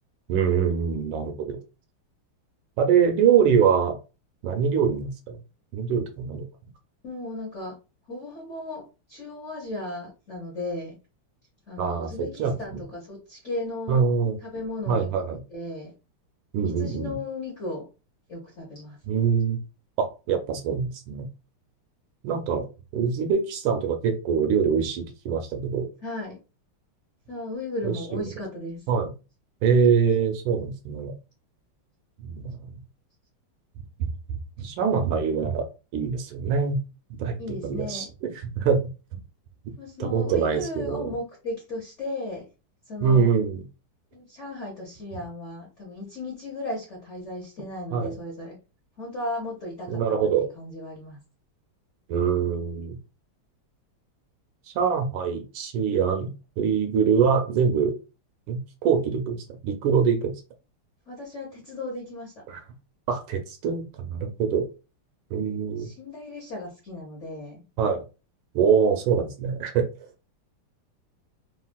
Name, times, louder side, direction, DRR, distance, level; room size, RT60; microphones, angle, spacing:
voice 1, 0.3-1.6 2.8-4.0 4.4-5.4 5.7-6.5 11.8-12.8 13.9-14.4 14.9-15.4 16.5-17.2 19.1-19.6 20.0-21.3 22.2-22.6 22.9-25.9 27.8-28.3 28.9-29.1 29.6-31.1 32.2-32.8 34.0-34.1 34.6-35.7 35.9-36.8 37.1-38.8 39.1-39.2 39.6-39.7 40.0-41.1 43.0-43.6 47.9-48.1 49.9-50.5 52.1-53.0 54.7-57.9 58.5-60.3 62.5-62.6 63.1-64.7 65.3-65.9 67.8-68.0 68.5-69.9, right 6 dB, 75° right, 6 dB, 1.3 m, -24 dB
voice 2, 7.0-7.7 8.1-8.8 9.1-11.0 11.7-14.1 14.4-15.2 15.5-15.9 16.8-17.8 18.3-19.0 26.0-26.4 27.3-28.8 37.4-38.1 39.8-42.4 42.9-43.3 44.1-48.6 49.0-51.2 61.1-62.3 65.8-67.6, left 2 dB, 50° left, -3 dB, 0.8 m, -35 dB
3.4 x 2.5 x 2.2 m, 0.31 s
omnidirectional pair, 2.4 m